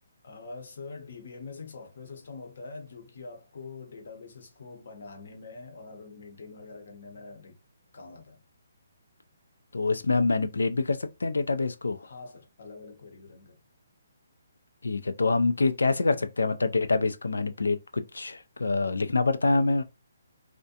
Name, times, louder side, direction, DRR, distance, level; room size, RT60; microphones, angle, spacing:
voice 1, 0.2-7.6 7.9-8.4 12.0-13.6, left 4 dB, 65° left, 0.8 m, -44 dB
voice 2, 9.7-12.1 14.8-19.8, left 3 dB, 90° left, 0.4 m, -26 dB
2.5 x 2.1 x 2.7 m
hypercardioid pair, 155°, 0 cm